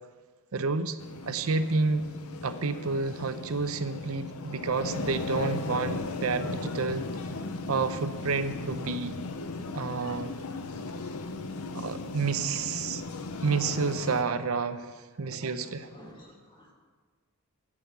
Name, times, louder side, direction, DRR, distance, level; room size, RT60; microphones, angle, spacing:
voice 1, 0.5-1.0 1.2-2.1 2.4-7.0 7.7-9.2 9.7-10.3 11.7-13.0 13.4-14.9 15.2-15.9, right 4 dB, 75° right, 11 dB, 0.7 m, -29 dB
sound 1, 1.0-14.2, left 3 dB, 85° left, 0.7 m, -37 dB
voice 2, 15.8-16.7, equal, 20° left, -2 dB, 2.4 m, -51 dB
8.3 x 7.5 x 8.0 m, 1.5 s
head